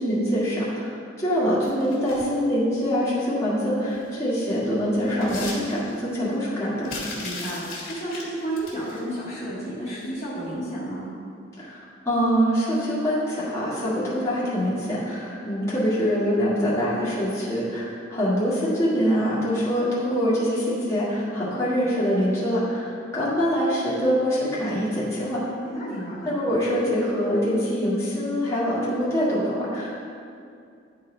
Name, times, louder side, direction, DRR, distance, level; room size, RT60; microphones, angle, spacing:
voice 1, 0.0-6.9 11.6-25.4 26.2-29.9, equal, 15° left, -10 dB, 1.8 m, -24 dB
sound 1, 1.6-2.4 3.9-4.1 4.5-6.1 6.8-9.0 10.0-10.2 10.5-10.6, left 3 dB, 85° left, 1.8 m, -37 dB
voice 2, 7.2-11.1 25.6-26.3, right 1 dB, 30° left, -11 dB, 1.5 m, -32 dB
10.5 x 4.1 x 3.9 m, 2.4 s
head